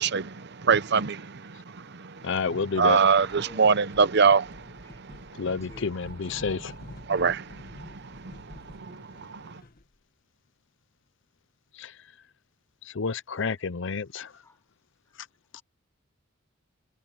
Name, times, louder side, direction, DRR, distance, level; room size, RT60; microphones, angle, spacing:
voice 1, 0.0-2.3 2.8-5.4 7.1-9.6, right 5 dB, 55° right, 0.8 m, -25 dB
voice 2, 2.2-3.0 5.4-6.7 11.7-12.0 12.8-14.4 15.2-15.3 15.5-15.6, left 5 dB, 65° left, 0.7 m, -30 dB
sound 1, 2.9-3.6 3.9-10.0, left 1 dB, 45° left, 1.7 m, -48 dB
voice 3, 3.3-3.7 5.4-5.9 14.5-14.6, left 1 dB, 15° left, 1.1 m, -49 dB
head